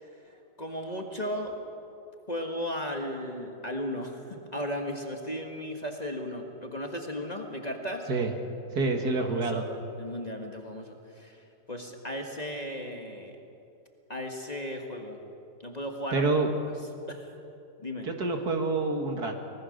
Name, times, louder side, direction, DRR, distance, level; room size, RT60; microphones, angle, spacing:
voice 1, 0.0-1.6 2.3-8.1 9.2-9.6 10.0-11.4 11.7-13.4 14.1-15.2 15.6-16.3 17.1-17.3 17.8-18.1, equal, 25° left, 2 dB, 1.7 m, -36 dB
voice 2, 8.7-9.7 16.1-16.5 18.0-19.4, right 3 dB, 65° right, 4 dB, 2.3 m, -27 dB
24.5 x 19.5 x 6.6 m, 2.7 s
omnidirectional pair, 1.8 m